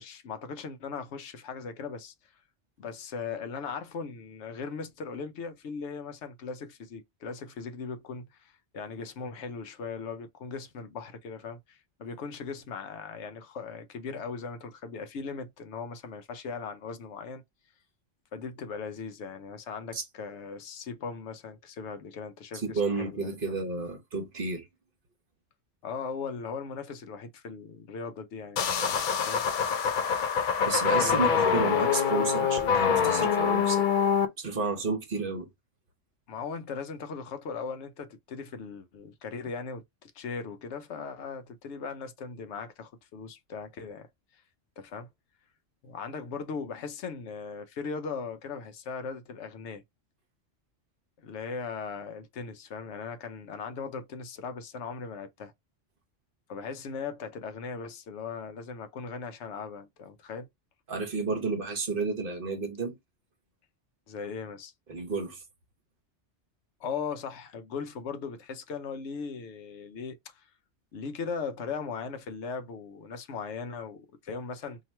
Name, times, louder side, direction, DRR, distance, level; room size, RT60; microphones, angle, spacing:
voice 1, 0.0-2.1 2.8-17.4 18.3-23.6 25.8-29.4 31.0-31.5 36.3-44.1 44.3-44.4 44.8-45.1 45.8-49.8 51.2-55.5 56.5-60.5 64.1-64.7 66.8-70.5 70.9-74.8, left 5 dB, 75° left, 1.0 m, -38 dB
voice 2, 22.5-24.7 30.6-33.9 34.4-35.5 60.9-62.9 64.9-65.4, right 3 dB, 50° right, 1.2 m, -31 dB
sound 1, 28.6-34.3, left 7 dB, 55° left, 0.5 m, -25 dB
2.9 x 2.8 x 4.3 m
omnidirectional pair, 1.2 m